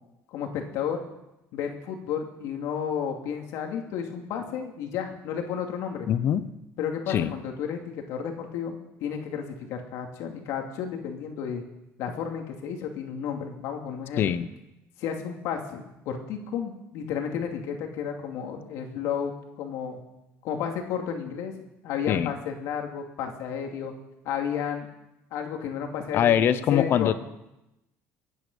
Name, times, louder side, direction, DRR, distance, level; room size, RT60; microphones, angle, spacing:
voice 1, 0.3-1.0 1.5-6.1 6.8-11.6 12.0-14.2 15.0-20.0 20.4-21.5 21.8-23.9 24.2-24.9 25.3-27.1, left 7 dB, 65° left, 3 dB, 2.5 m, -32 dB
voice 2, 6.1-6.5 7.1-7.3 14.2-14.5 22.1-22.3 26.1-27.1, left 10 dB, 45° left, 14 dB, 0.9 m, -23 dB
24.5 x 9.9 x 5.5 m, 0.91 s
cardioid pair, 155°, 6 cm